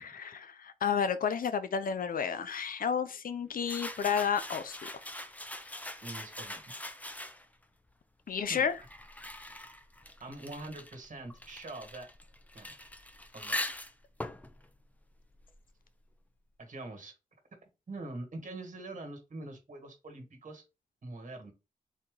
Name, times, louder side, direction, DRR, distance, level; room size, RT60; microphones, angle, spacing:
voice 1, 0.0-4.9 8.3-8.8, left 7 dB, 70° left, 0.5 m, -31 dB
sound 1, 3.6-7.6 8.4-15.8, left 1 dB, 10° left, 0.5 m, -42 dB
voice 2, 6.0-6.6 8.3-8.7 10.2-12.1 12.5-12.7 13.3-13.6 16.6-17.1 17.9-20.6 21.0-21.5, right 2 dB, 55° right, 1.7 m, -44 dB
4.1 x 2.9 x 3.7 m
wide cardioid pair, 80°, 15 cm